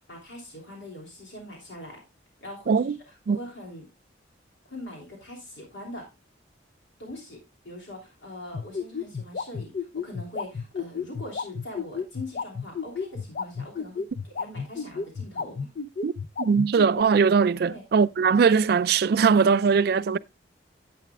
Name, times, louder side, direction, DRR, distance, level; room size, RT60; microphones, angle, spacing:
voice 1, 0.0-2.0 2.4-2.9 3.3-3.8 4.7-6.1 7.0-15.7 17.7-17.8 20.1-20.2, left 1 dB, 80° left, 3.1 m, -42 dB
voice 2, 2.7-3.0 3.3-3.4 16.0-16.1 16.4-20.2, right 5 dB, 55° right, 0.3 m, -20 dB
sound 1, 8.5-17.0, left 5 dB, 50° left, 0.5 m, -31 dB
10.5 x 8.5 x 2.3 m
head